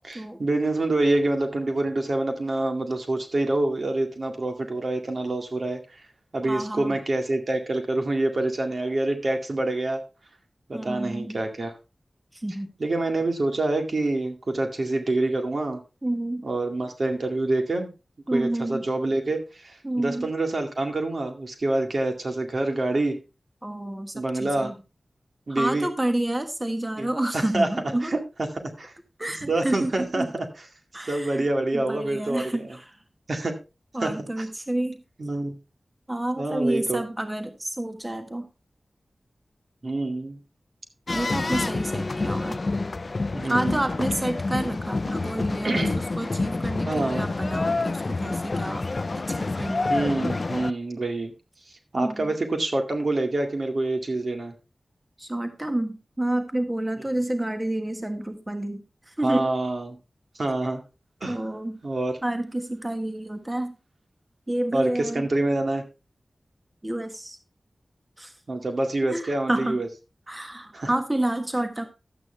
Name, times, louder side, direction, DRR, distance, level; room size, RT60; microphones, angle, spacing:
voice 1, 0.0-6.0 6.3-10.0 10.7-11.7 12.8-15.8 16.4-17.9 18.3-23.2 24.1-24.7 25.5-25.9 27.0-27.1 27.3-27.7 28.0-28.2 28.8-28.9 29.5-30.5 31.1-32.6 33.3-33.5 34.0-34.4 35.2-35.6 36.4-37.0 39.8-40.4 43.3-43.9 45.6-46.0 46.8-47.3 49.9-51.3 51.9-54.5 59.2-60.0 60.4-60.8 61.2-61.4 61.8-62.1 64.7-65.8 68.5-69.9 70.7-70.9, right 2 dB, 65° right, 4 dB, 2.1 m, -26 dB
voice 2, 6.4-7.0 10.7-11.4 12.3-12.7 16.0-16.4 18.3-18.8 19.8-20.3 23.6-24.7 25.5-28.1 29.2-30.3 30.9-31.5 31.7-33.0 33.9-35.0 36.1-38.5 41.1-42.6 43.4-48.8 49.2-49.9 51.9-52.4 55.2-59.5 61.2-61.8 62.2-63.8 64.5-65.3 66.8-67.4 68.2-68.4 69.1-69.8 70.3-71.8, right 1 dB, 20° right, 7 dB, 1.5 m, -29 dB
sound 1, 41.1-50.7, left 3 dB, 55° left, 0.4 m, -28 dB
12.0 x 8.5 x 3.4 m, 0.29 s
cardioid pair, 40°, 0 cm